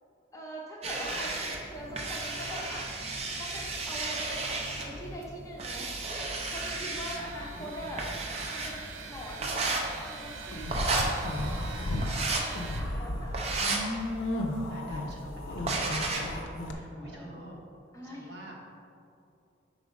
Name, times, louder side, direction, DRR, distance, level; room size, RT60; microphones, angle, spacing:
voice 1, 0.3-3.0 3.4-5.9 6.5-8.1 8.5-9.7 10.0-13.3 16.9-17.4 17.9-18.3, equal, 15° left, -3 dB, 0.6 m, -42 dB
sound 1, 0.8-16.4, right 2 dB, 30° right, 0.5 m, -34 dB
voice 2, 1.0-1.4 4.9-5.2 7.1-7.3 7.5-8.2 12.6-13.6 14.7-17.6 18.0-18.6, right 1 dB, 55° right, -2 dB, 0.9 m, -48 dB
sound 2, 7.0-12.8, right 5 dB, 85° right, 0.6 m, -44 dB
sound 3, 10.5-12.1 12.5-16.7, left 1 dB, 75° left, 0.5 m, -34 dB
4.7 x 3.9 x 5.2 m, 2.6 s
head